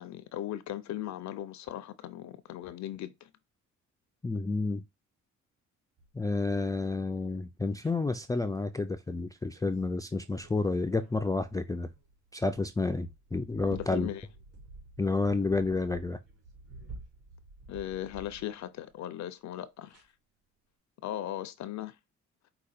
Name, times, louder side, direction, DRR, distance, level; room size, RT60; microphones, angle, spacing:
voice 1, 0.0-3.3 13.7-14.3 17.7-20.1 21.0-22.0, left 12 dB, 65° left, 0.6 m, -38 dB
voice 2, 4.2-4.8 6.1-11.9 12.3-14.1 15.0-16.2, left 3 dB, 10° left, 0.3 m, -30 dB
sound 1, 6.0-6.9 7.8-8.3 9.5-9.8 10.1-18.9 19.9-20.0, right 2 dB, 50° right, 3.4 m, -51 dB
4.9 x 2.3 x 4.2 m
cardioid pair, 90°, 30 cm